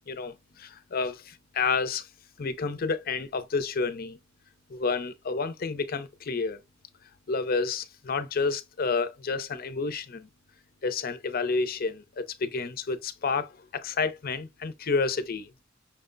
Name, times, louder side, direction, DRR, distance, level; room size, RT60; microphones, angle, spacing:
voice 1, 0.6-2.1 2.4-4.2 4.7-6.6 7.3-10.3 10.8-15.5, left 4 dB, 45° left, 0.5 m, -30 dB
5.8 x 2.1 x 3.8 m
head